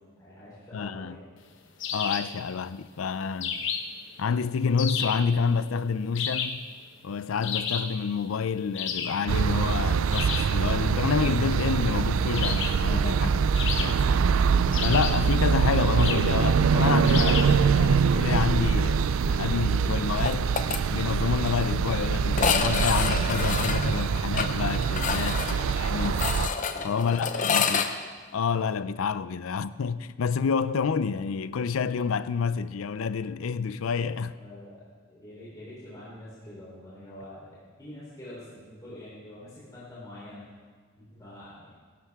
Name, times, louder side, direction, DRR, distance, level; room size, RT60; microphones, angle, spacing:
voice 1, 0.2-1.3 3.4-3.6 12.8-13.2 25.1-25.5 26.7-27.5 34.4-34.8 35.1-40.5 41.0-41.7, left 1 dB, 20° left, 3.7 m, -45 dB
voice 2, 0.7-1.2 1.9-3.6 4.2-6.7 7.0-14.0 14.8-20.5 20.9-25.4 25.7-26.3 26.8-27.9 28.3-34.4, left 5 dB, 85° left, 0.5 m, -28 dB
sound 1, 1.8-2.4 3.4-4.0 4.8-5.3 6.1-6.7 7.4-8.0 8.7-9.3 10.1-10.6 12.3-12.9 13.5-14.2 14.7-15.3 16.0-16.3 17.0-17.6, left 7 dB, 65° left, 1.0 m, -32 dB
sound 2, 9.3-26.5, right 6 dB, 80° right, 0.4 m, -24 dB
sound 3, 20.3-20.8 21.1-21.2 21.5-21.6 22.3-27.9, left 5 dB, 40° left, 0.7 m, -28 dB
17.5 x 12.0 x 3.6 m
head